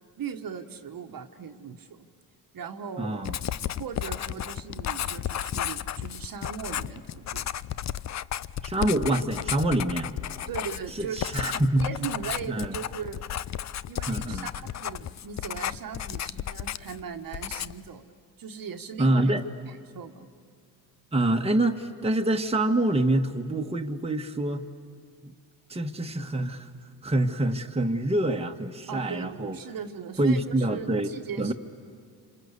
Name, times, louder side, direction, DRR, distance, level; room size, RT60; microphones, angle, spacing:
voice 1, 0.2-2.1 2.5-3.2 3.8-7.4 10.5-13.2 13.9-19.3 19.7-20.3 28.9-31.5, right 7 dB, 45° right, 6 dB, 1.4 m, -39 dB
voice 2, 3.0-3.4 8.6-10.1 11.0-11.8 12.5-12.8 14.1-14.5 19.0-19.4 21.1-24.6 25.2-25.3 25.7-26.7 27.0-29.6 30.2-31.1 31.4-31.5, right 1 dB, 15° right, 3 dB, 1.5 m, -26 dB
Writing, 3.2-17.0 17.3-17.9, left 11 dB, 40° left, 0.6 m, -33 dB
27.5 x 26.0 x 8.3 m, 2.2 s
supercardioid pair, 65°, 45 cm